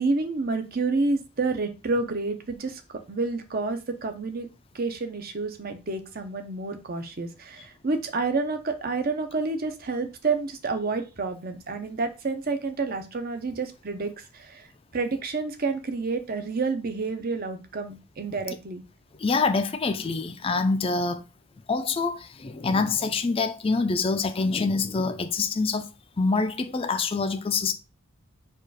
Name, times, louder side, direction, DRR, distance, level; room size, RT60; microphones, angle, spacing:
voice 1, 0.0-4.5 4.7-14.7 14.9-18.8, right 3 dB, 45° right, 0.7 m, -29 dB
voice 2, 19.2-21.2 21.7-25.9 26.2-27.7, left 4 dB, 25° left, 0.4 m, -25 dB
4.6 x 2.4 x 4.7 m
head